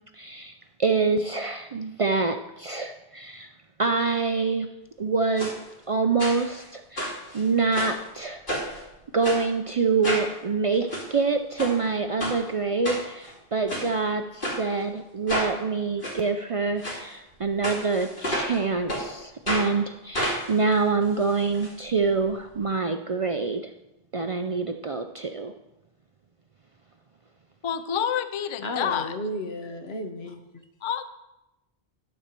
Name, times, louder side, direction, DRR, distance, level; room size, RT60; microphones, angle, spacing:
voice 1, 0.2-0.5 0.8-3.5 3.8-4.7 5.0-5.5 5.9-8.4 9.1-23.6 24.1-25.5, right 4 dB, 45° right, 6 dB, 0.4 m, -26 dB
sound 1, 5.4-5.5 6.2-6.6 7.0-8.0 8.5-8.8 9.2-9.4 10.0-10.3 10.7-11.0 11.6-11.8 12.2-12.4 12.8-13.3 13.7-13.9 14.4-14.6 15.3-15.5 16.0-16.2 16.8-17.0 17.6-18.6 18.9-19.0 19.5-19.7 20.1-21.7 22.0-22.1 22.3-22.4, equal, 55° left, 3.0 m, -30 dB
voice 2, 27.6-29.2 30.8-31.0, left 8 dB, 40° left, 11 dB, 0.4 m, -28 dB
voice 3, 28.6-30.6, left 1 dB, 80° left, 5 dB, 1.3 m, -33 dB
11.5 x 4.3 x 6.7 m, 0.94 s
omnidirectional pair, 1.0 m